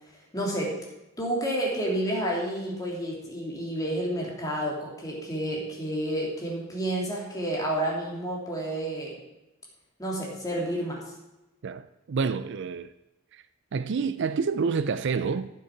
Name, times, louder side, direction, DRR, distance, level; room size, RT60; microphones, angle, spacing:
voice 1, 0.3-0.7 1.2-9.1 10.0-11.1, right 1 dB, 15° left, 2.8 m, -30 dB
voice 2, 11.6-12.9 13.3-13.4 13.7-15.5, right 5 dB, 60° right, 0.4 m, -28 dB
11.5 x 7.2 x 5.9 m
head